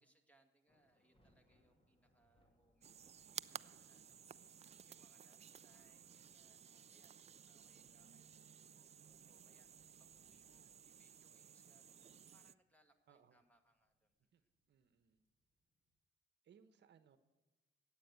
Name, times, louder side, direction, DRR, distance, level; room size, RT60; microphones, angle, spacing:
voice 1, 0.0-14.5, right 1 dB, 5° left, 6 dB, 2.0 m, -77 dB
sound 1, 0.7-16.0, equal, 30° left, 2.9 m, -81 dB
sound 2, 2.8-12.5, right 8 dB, 35° right, 0.4 m, -56 dB
voice 2, 13.1-13.4 14.3-14.4 14.7-15.2 16.4-17.2, right 7 dB, 60° right, 11 dB, 1.0 m, -68 dB
13.5 x 9.0 x 8.2 m, 1.1 s
cardioid pair, 90°, 20 cm